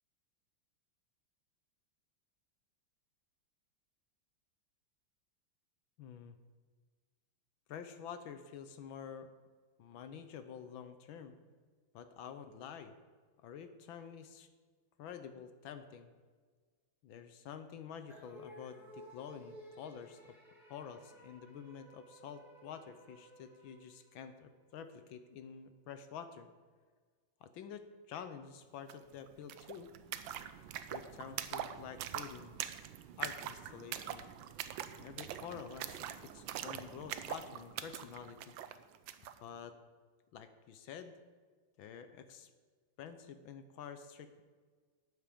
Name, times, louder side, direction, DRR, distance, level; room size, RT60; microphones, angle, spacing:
voice 1, 6.0-6.4 7.7-9.3 9.8-11.3 11.9-12.9 13.4-14.5 15.0-16.1 17.0-20.4 20.7-26.5 27.4-29.9 30.9-32.7 33.2-34.2 35.0-38.6 39.4-39.8 40.3-41.2 41.8-42.5 43.0-44.4, left 7 dB, 70° left, 10 dB, 1.4 m, -49 dB
sound 1, 18.1-24.6, equal, ahead, 2.1 m, -56 dB
Walk - Pud, 28.9-29.0 29.2-39.4, right 10 dB, 75° right, 1.3 m, -43 dB
12.0 x 8.5 x 5.1 m, 1.5 s
omnidirectional pair, 2.4 m